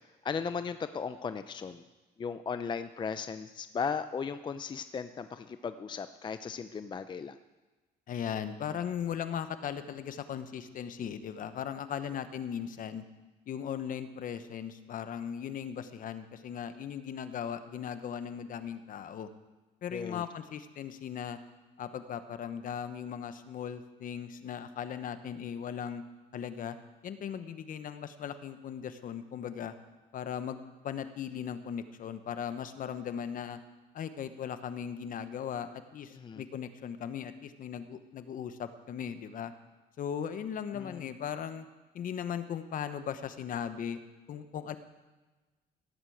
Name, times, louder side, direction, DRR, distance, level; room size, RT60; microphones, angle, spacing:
voice 1, 0.2-1.8 2.2-7.4 19.9-20.2 36.1-36.4 40.7-41.0, left 6 dB, 25° left, 11 dB, 0.5 m, -36 dB
voice 2, 8.1-13.0 13.5-19.3 19.8-21.4 21.8-26.0 26.3-26.8 27.0-29.7 30.1-33.6 33.9-39.5 40.0-41.6 41.9-44.0 44.3-44.8, left 8 dB, 55° left, 11 dB, 1.1 m, -38 dB
17.0 x 8.1 x 7.9 m, 1.2 s
cardioid pair, 110°, 17 cm